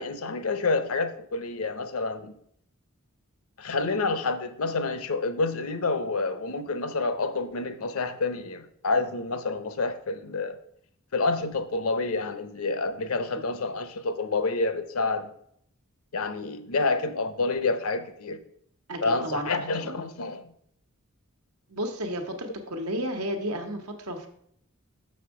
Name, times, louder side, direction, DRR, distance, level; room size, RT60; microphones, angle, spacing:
voice 1, 0.0-2.3 3.6-10.6 11.1-15.3 16.1-18.4 19.0-20.5, left 3 dB, 70° left, 11 dB, 0.7 m, -28 dB
voice 2, 18.9-20.1 21.7-24.3, equal, 80° right, 4 dB, 1.2 m, -33 dB
6.5 x 6.2 x 4.7 m, 0.69 s
head